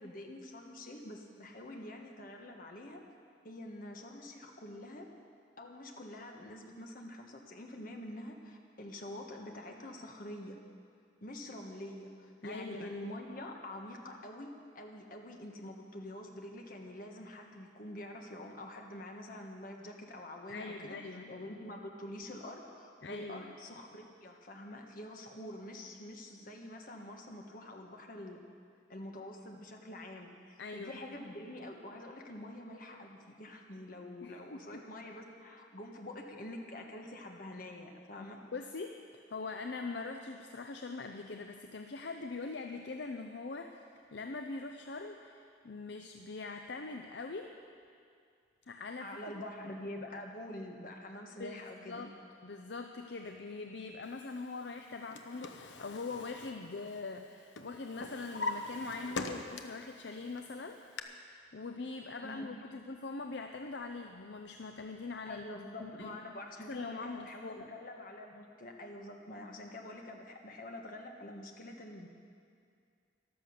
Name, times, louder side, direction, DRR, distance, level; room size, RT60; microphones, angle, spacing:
voice 1, 0.0-3.0 3.4-5.1 5.6-10.6 11.2-21.0 21.3-28.4 28.9-38.4 49.0-52.1 62.2-62.5 65.3-72.1, left 1 dB, 50° left, 2 dB, 1.5 m, -46 dB
voice 2, 12.4-12.9 20.5-21.4 23.0-23.6 30.6-31.0 34.2-34.8 38.2-38.3 38.5-43.7 44.1-47.5 48.7-49.1 49.3-49.4 51.4-52.1 52.4-65.5 65.8-66.2 66.7-67.7, left 3 dB, 65° left, 5 dB, 0.6 m, -42 dB
Drawer open or close, 54.8-57.3 57.6-59.9 60.3-61.0, left 2 dB, 85° left, 0.9 m, -41 dB
13.5 x 12.0 x 6.7 m, 2.3 s
head